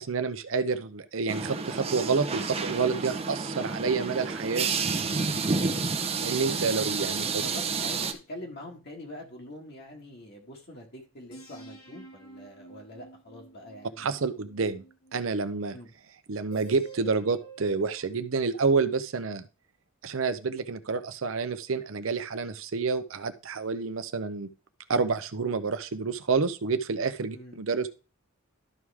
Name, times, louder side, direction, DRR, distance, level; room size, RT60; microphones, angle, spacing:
voice 1, 0.0-4.7 6.2-7.2 14.0-14.8 15.1-15.7 16.3-19.4 20.0-24.5 24.9-27.9, right 4 dB, 75° right, 10 dB, 0.6 m, -28 dB
sound 1, 1.3-8.1, right 4 dB, 30° right, 0.7 m, -30 dB
sound 2, 5.1-10.3 11.3-15.6 16.5-18.1, right 3 dB, 85° left, 1.8 m, -51 dB
voice 2, 5.6-5.9 7.2-14.2 15.7-15.9 27.3-27.6, left 1 dB, 55° left, 0 dB, 1.9 m, -44 dB
12.5 x 4.8 x 3.5 m, 0.33 s
head